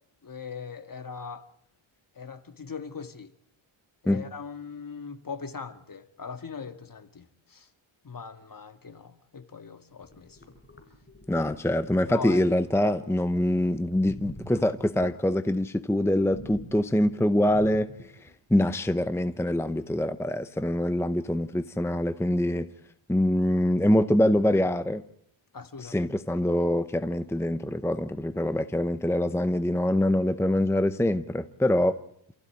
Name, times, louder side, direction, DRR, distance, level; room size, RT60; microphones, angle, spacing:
voice 1, 0.2-1.4 2.2-3.3 4.0-7.7 8.0-10.4 12.0-12.4 25.5-26.1, left 5 dB, 45° left, 2.0 m, -40 dB
sound 1, 10.0-12.2 13.9-15.2 16.3-18.3, left 1 dB, 25° left, 5.2 m, -46 dB
voice 2, 11.3-17.9 18.5-22.7 23.1-25.0 25.8-31.9, left 1 dB, 5° left, 0.9 m, -24 dB
28.5 x 15.5 x 8.8 m
wide cardioid pair, 115°, 48 cm